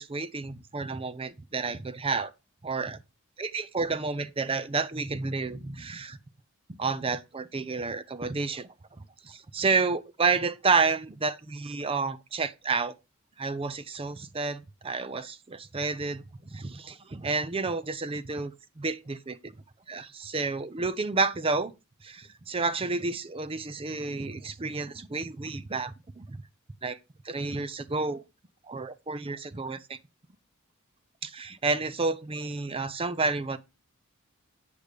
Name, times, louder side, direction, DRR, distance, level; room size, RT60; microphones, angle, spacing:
voice 1, 0.0-2.3 2.6-3.0 3.4-6.2 6.7-8.7 9.2-12.9 13.4-16.2 16.5-19.5 19.9-21.7 22.0-26.4 26.8-27.0 27.2-28.2 28.6-30.0 31.2-33.6, right 4 dB, 25° right, 0.5 m, -30 dB
8.5 x 5.2 x 4.9 m
head